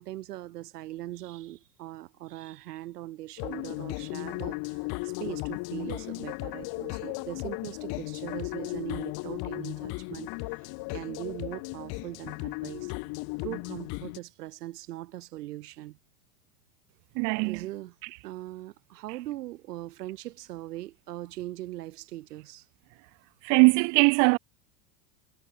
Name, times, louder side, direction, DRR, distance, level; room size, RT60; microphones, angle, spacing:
voice 1, 0.0-10.3 10.6-12.9 13.4-16.0 17.4-18.0 18.2-22.7, right 15 dB, 90° right, 2.0 m, -40 dB
sound 1, 3.4-14.2, left 28 dB, 55° left, 1.3 m, -36 dB
voice 2, 17.2-17.6 23.4-24.4, right 33 dB, 45° right, 0.4 m, -21 dB
supercardioid pair, 115°, 46 cm